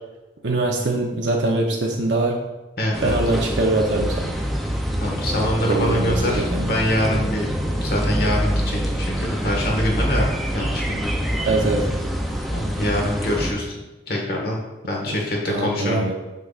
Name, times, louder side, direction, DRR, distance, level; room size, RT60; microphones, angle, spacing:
voice 1, 0.4-2.4 3.0-4.3 5.6-6.8 11.4-11.9 15.1-15.2 15.5-16.1, right 2 dB, 85° right, -1 dB, 0.7 m, -23 dB
voice 2, 2.8-3.2 5.0-7.5 7.7-10.3 10.5-11.1 12.5-13.7 14.1-14.6 14.9-16.1, equal, 55° left, -1 dB, 1.5 m, -24 dB
sound 1, 2.9-13.5, equal, ahead, 0.5 m, -25 dB
6.6 x 6.3 x 2.5 m, 1.1 s
head